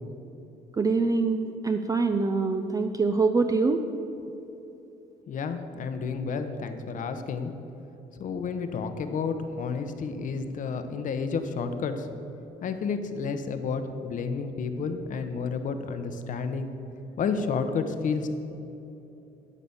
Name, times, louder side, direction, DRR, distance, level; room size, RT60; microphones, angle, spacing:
voice 1, 0.8-3.8, right 4 dB, 20° right, 6 dB, 0.5 m, -24 dB
voice 2, 5.3-7.5 8.2-12.1 12.6-16.7 17.2-18.3, left 5 dB, 50° left, 8 dB, 0.9 m, -31 dB
12.5 x 5.0 x 7.1 m, 3.0 s
cardioid pair, 110°, 17 cm